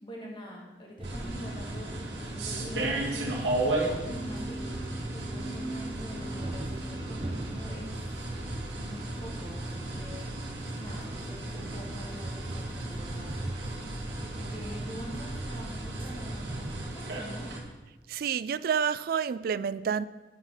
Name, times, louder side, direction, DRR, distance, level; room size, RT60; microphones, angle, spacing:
voice 1, 0.0-8.0 8.7-13.5 14.3-17.6, equal, 30° left, -1 dB, 1.7 m, -45 dB
sound 1, 1.0-16.8, right 1 dB, 30° right, 0.8 m, -39 dB
sound 2, 1.0-17.6, right 2 dB, 70° right, 2.0 m, -36 dB
sound 3, 3.9-7.1, right 2 dB, 75° left, 2.1 m, -41 dB
voice 2, 18.1-20.0, right 7 dB, 55° right, 16 dB, 0.3 m, -29 dB
9.5 x 5.9 x 5.7 m, 1.2 s
head